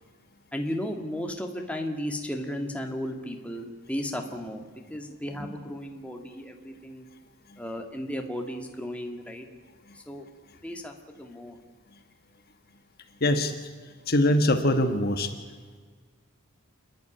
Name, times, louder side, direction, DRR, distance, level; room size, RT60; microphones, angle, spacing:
voice 1, 0.5-7.0 7.6-9.4 10.1-10.3 10.6-11.6, equal, 5° left, 3 dB, 1.8 m, -34 dB
voice 2, 13.2-13.5 14.1-15.3, left 1 dB, 45° left, 6 dB, 1.4 m, -22 dB
28.5 x 11.0 x 9.9 m, 1.5 s
head